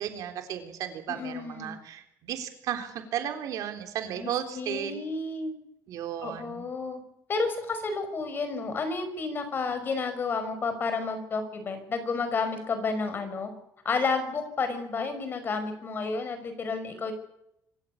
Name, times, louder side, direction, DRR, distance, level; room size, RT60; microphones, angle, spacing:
voice 1, 0.0-5.0 5.9-6.7, right 10 dB, 65° right, 6 dB, 3.6 m, -34 dB
voice 2, 1.1-1.7 4.2-5.5 6.2-7.0 7.3-13.5 13.8-17.1, left 4 dB, 30° left, 9 dB, 5.3 m, -31 dB
25.5 x 14.5 x 8.5 m, 0.78 s
cardioid pair, 140°, 7 cm